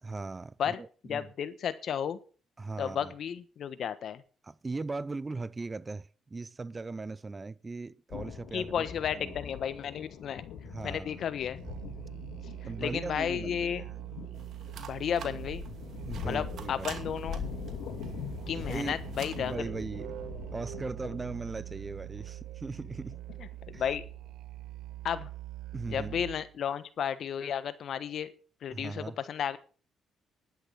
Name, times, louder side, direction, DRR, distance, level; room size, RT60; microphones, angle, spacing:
voice 1, 0.0-1.3 2.6-3.1 4.4-8.8 9.1-9.4 10.6-11.3 12.6-13.8 16.0-17.0 18.6-19.0 19.4-20.2 20.5-23.2 23.7-23.8 25.7-26.2 28.7-29.2, right 3 dB, 25° right, 0.6 m, -39 dB
voice 2, 0.6-2.2 2.8-4.2 8.5-10.5 10.8-11.6 12.8-13.8 14.8-15.6 16.2-17.4 18.5-19.6 23.7-24.0 25.0-25.3 25.9-28.3 28.6-29.6, left 8 dB, 65° left, 1.3 m, -33 dB
sound 1, 8.1-24.3, left 8 dB, 90° left, 2.8 m, -43 dB
Musical instrument, 11.5-26.6, right 16 dB, 85° right, 0.5 m, -43 dB
sound 2, 14.3-19.5, right 7 dB, 65° right, 2.4 m, -48 dB
11.5 x 10.0 x 5.7 m
cardioid pair, 90°, 0 cm